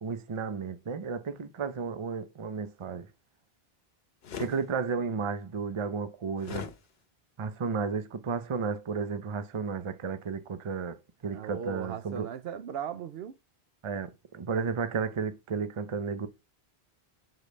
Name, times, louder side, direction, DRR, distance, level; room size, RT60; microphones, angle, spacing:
voice 1, 0.0-3.1 4.4-6.7 7.4-11.0 11.2-12.3 13.8-16.3, right 5 dB, 35° right, 0.6 m, -33 dB
sound 1, 4.2-4.6 6.4-6.8, left 6 dB, 75° left, 1.0 m, -38 dB
voice 2, 11.3-13.4, right 8 dB, 75° right, 0.8 m, -37 dB
5.1 x 4.0 x 5.3 m
omnidirectional pair, 1.0 m